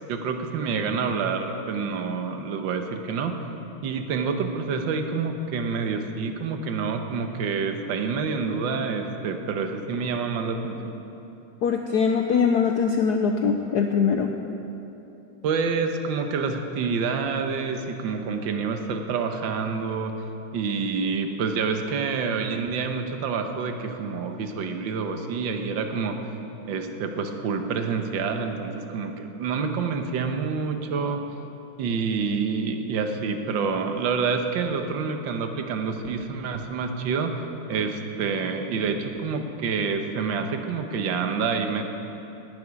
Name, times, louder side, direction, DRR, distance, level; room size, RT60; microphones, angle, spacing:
voice 1, 0.1-3.4 3.8-11.0 15.4-20.1 20.5-26.2 26.7-31.2 31.8-41.8, right 5 dB, 65° right, 5 dB, 1.7 m, -27 dB
voice 2, 11.6-14.4, left 6 dB, 70° left, 4 dB, 1.0 m, -22 dB
11.5 x 9.9 x 9.6 m, 3.0 s
omnidirectional pair, 2.4 m